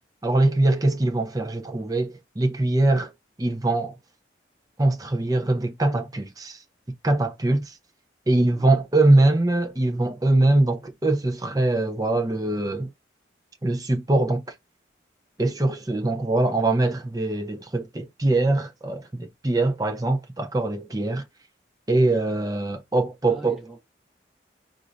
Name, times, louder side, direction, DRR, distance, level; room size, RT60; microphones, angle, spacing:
voice 1, 0.2-3.1 3.4-4.0 4.8-6.6 7.0-7.7 8.3-12.9 13.6-14.4 15.4-21.2 21.9-23.6, right 2 dB, 20° right, 0.6 m, -22 dB
voice 2, 8.5-8.8 23.2-23.8, right 2 dB, ahead, 1.8 m, -43 dB
4.6 x 2.6 x 3.9 m
head